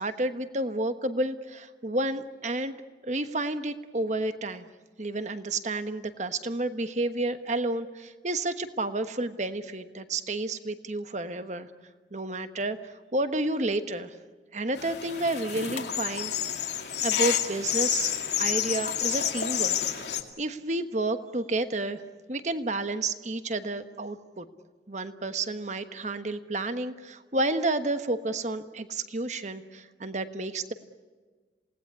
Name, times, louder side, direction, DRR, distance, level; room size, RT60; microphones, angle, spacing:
voice 1, 0.0-2.8 3.0-4.7 5.0-11.7 12.1-14.1 14.5-16.3 16.7-18.1 18.4-19.8 20.4-22.0 22.3-24.5 24.9-30.7, right 2 dB, 40° right, 9 dB, 1.2 m, -30 dB
sound 1, 14.8-20.2, left 10 dB, 70° left, 2.3 m, -29 dB
28.0 x 18.5 x 9.6 m, 1.4 s
head